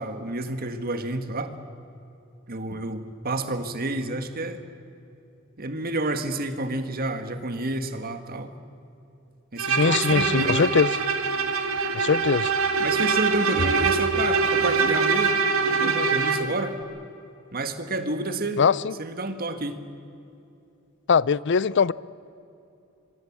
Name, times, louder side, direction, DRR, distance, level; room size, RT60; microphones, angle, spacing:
voice 1, 0.0-1.5 2.5-4.6 5.6-8.5 9.5-10.7 12.8-16.8 17.5-18.6 19.0-19.8, right 2 dB, 45° right, 1.8 m, -29 dB
Bowed string instrument, 9.6-16.5, right 4 dB, 80° right, 2.3 m, -23 dB
voice 2, 9.7-10.9 11.9-12.5 18.6-18.9 21.1-21.9, left 6 dB, 60° left, 0.5 m, -21 dB
26.0 x 22.5 x 7.4 m
head